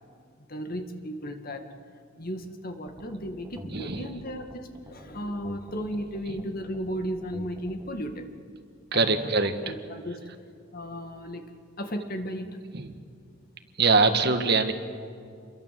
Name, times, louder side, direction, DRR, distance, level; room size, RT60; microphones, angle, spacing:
voice 1, 0.5-1.6 2.2-8.3 8.9-9.2 9.6-10.2 10.7-11.4 11.8-12.6, equal, 45° left, 6 dB, 2.1 m, -35 dB
sound 1, 2.9-7.9, right 1 dB, 15° right, 1.7 m, -47 dB
voice 2, 3.7-4.1 8.9-9.7 12.7-12.9 13.8-14.7, right 3 dB, 50° right, 7 dB, 1.7 m, -23 dB
28.5 x 22.5 x 7.8 m, 2.3 s
head